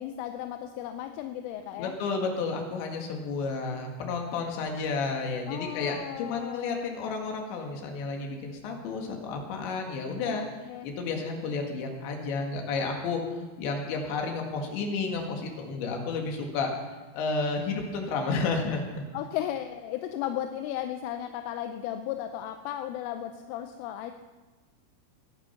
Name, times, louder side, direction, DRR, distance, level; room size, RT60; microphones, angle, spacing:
voice 1, 0.0-2.0 5.5-6.9 10.3-10.9 19.1-24.1, left 11 dB, 80° left, 7 dB, 3.1 m, -35 dB
voice 2, 1.8-10.5 10.8-13.2 13.6-16.7 17.1-18.8, left 4 dB, 65° left, 2 dB, 3.9 m, -31 dB
20.5 x 10.0 x 5.7 m, 1.3 s
omnidirectional pair, 5.9 m